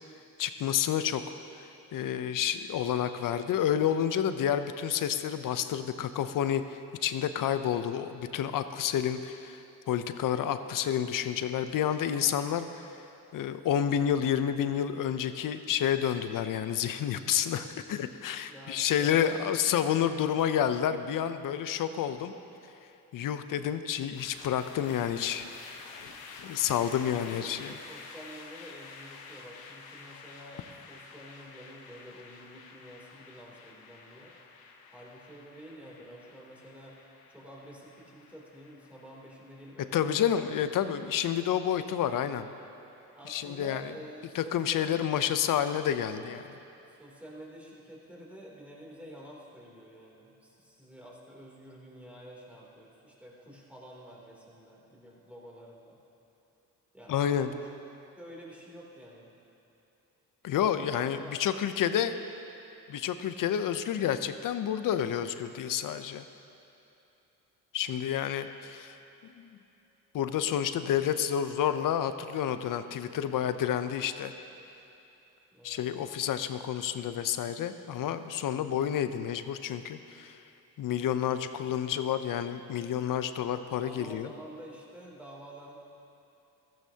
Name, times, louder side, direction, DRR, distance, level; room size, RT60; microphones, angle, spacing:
voice 1, 0.4-1.2 1.9-9.6 9.9-12.9 13.3-22.3 23.1-25.4 26.4-27.7 39.9-42.5 43.3-43.9 44.3-46.4 57.1-57.5 60.4-62.1 62.9-66.2 67.7-68.9 69.4-69.5 70.1-74.3 75.6-80.4 80.8-84.3, left 9 dB, 65° left, 11 dB, 0.7 m, -29 dB
voice 2, 18.5-19.5 26.8-34.3 34.9-37.0 37.3-40.7 43.1-45.3 46.9-56.0 56.9-57.7 58.2-59.3 61.0-61.4 75.5-75.8 83.8-85.8, equal, 5° right, -4 dB, 3.1 m, -49 dB
sound 1, 24.1-43.4, left 4 dB, 90° left, 1.1 m, -50 dB
15.5 x 13.5 x 2.9 m, 2.9 s
supercardioid pair, 75°, 36 cm